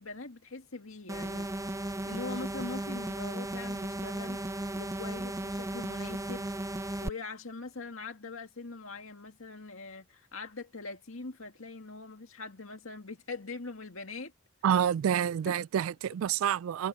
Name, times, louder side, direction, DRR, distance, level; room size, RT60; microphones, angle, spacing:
voice 1, 0.0-1.5 2.0-4.4 4.8-6.5 7.0-14.3 15.5-15.6, left 3 dB, 75° left, 2.2 m, -42 dB
sound 1, 1.1-7.1, right 1 dB, 15° right, 0.7 m, -35 dB
voice 2, 14.6-16.9, right 9 dB, 80° right, 0.3 m, -28 dB
head